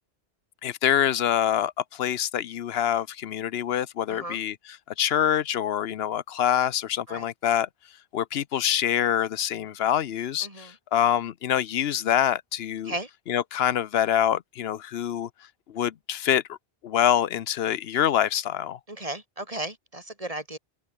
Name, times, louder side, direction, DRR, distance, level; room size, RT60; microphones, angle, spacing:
voice 1, 0.6-4.6 5.0-7.7 8.1-12.9 13.3-15.3 15.7-16.6 16.8-18.8, left 10 dB, 75° left, 0.9 m, -25 dB
voice 2, 4.1-4.4 7.1-7.3 10.4-10.8 12.8-13.1 18.9-20.6, right 1 dB, 35° right, 4.0 m, -35 dB
open air
omnidirectional pair, 1.1 m